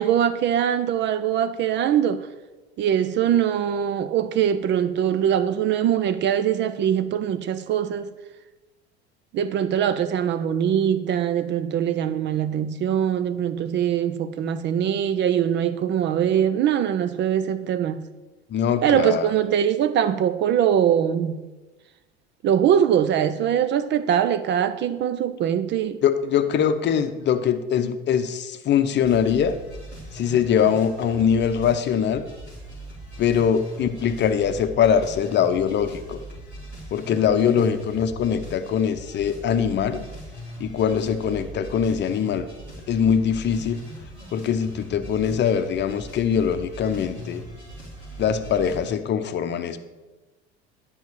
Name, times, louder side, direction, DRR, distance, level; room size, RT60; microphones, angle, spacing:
voice 1, 0.0-2.3 2.8-8.1 9.3-18.1 18.8-21.4 22.4-26.0, right 9 dB, 35° right, 0.6 m, -22 dB
voice 2, 18.5-19.3 26.0-29.5 30.1-32.2 33.2-36.2 36.9-40.0 40.6-42.5 42.9-43.8 44.3-47.4 48.2-49.8, left 8 dB, 35° left, 0.8 m, -22 dB
sound 1, 29.0-48.9, right 1 dB, 90° right, 3.2 m, -40 dB
10.5 x 5.7 x 6.6 m
figure-of-eight pair, 65°, 32 cm